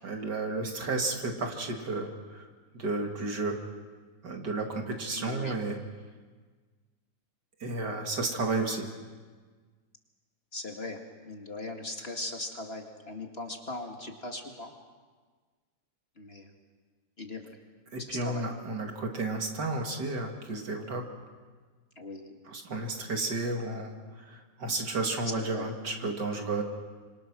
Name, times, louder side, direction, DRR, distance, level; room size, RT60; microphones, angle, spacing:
voice 1, 0.0-2.5 2.7-3.6 4.2-5.8 7.6-8.9 17.9-21.1 22.5-26.6, right 3 dB, 65° right, 3 dB, 2.8 m, -32 dB
voice 2, 5.1-5.6 10.5-11.0 11.2-14.7 16.2-16.5 17.2-17.4 18.0-18.4 22.0-22.4 25.2-25.7, left 2 dB, 35° left, 3 dB, 2.0 m, -39 dB
26.0 x 25.5 x 6.2 m, 1.5 s
omnidirectional pair, 2.0 m